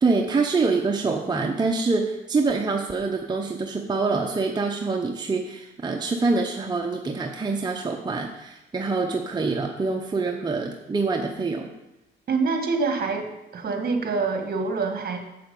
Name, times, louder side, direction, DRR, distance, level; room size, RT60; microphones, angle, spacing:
voice 1, 0.0-11.7, right 3 dB, 20° right, 2 dB, 0.8 m, -25 dB
voice 2, 12.3-13.3 13.5-15.2, right 4 dB, 50° right, 5 dB, 1.6 m, -25 dB
7.6 x 7.6 x 5.4 m, 0.95 s
cardioid pair, 90°, 20 cm